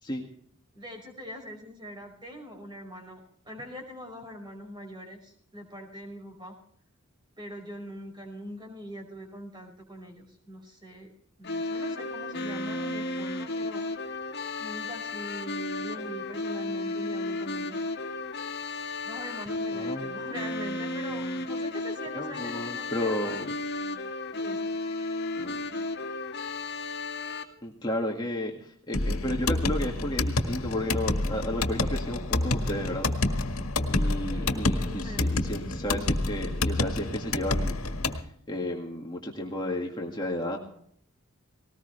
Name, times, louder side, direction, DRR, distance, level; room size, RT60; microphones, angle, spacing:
voice 1, 0.7-6.5 7.4-11.1 11.4-13.8 14.6-17.9 19.0-23.4 24.4-24.7 34.3-35.3, equal, 20° right, 2 dB, 5.5 m, -42 dB
sound 1, 11.4-27.4, left 2 dB, 55° left, 2.2 m, -33 dB
voice 2, 19.8-20.2 22.1-23.5 25.4-25.6 27.6-33.1 33.9-37.8 38.5-40.6, left 1 dB, 20° left, 0 dB, 2.0 m, -33 dB
sound 2, 28.9-38.2, left 2 dB, 85° left, 1.8 m, -28 dB
19.5 x 19.5 x 3.4 m, 0.64 s
head